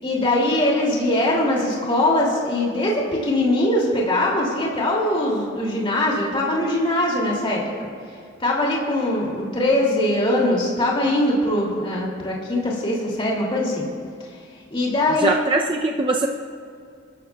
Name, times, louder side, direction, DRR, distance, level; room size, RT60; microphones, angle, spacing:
voice 1, 0.0-7.6 8.4-13.9 14.7-15.4, left 1 dB, 25° left, -3 dB, 2.6 m, -21 dB
voice 2, 15.2-16.3, right 2 dB, 25° right, 1 dB, 0.5 m, -21 dB
25.5 x 13.0 x 2.3 m, 2.3 s
head